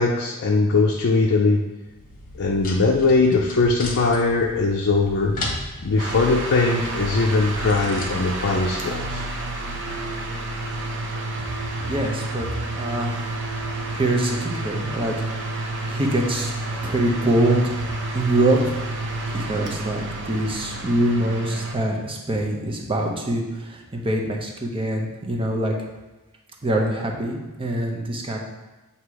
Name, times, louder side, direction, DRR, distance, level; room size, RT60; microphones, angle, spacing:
voice 1, 0.0-1.6 2.4-5.3 5.8-9.2, left 3 dB, 55° left, 0 dB, 0.5 m, -20 dB
sound 1, 1.8-8.1, left 2 dB, 40° left, 1.2 m, -36 dB
sound 2, 6.0-21.7, right 2 dB, 55° right, 0.7 m, -30 dB
voice 2, 11.9-12.5 12.8-13.4 13.9-15.3 15.9-16.5 16.8-17.7 18.1-25.7 26.6-28.4, right 1 dB, 25° right, 0 dB, 0.8 m, -24 dB
8.0 x 2.9 x 4.7 m, 1.1 s
head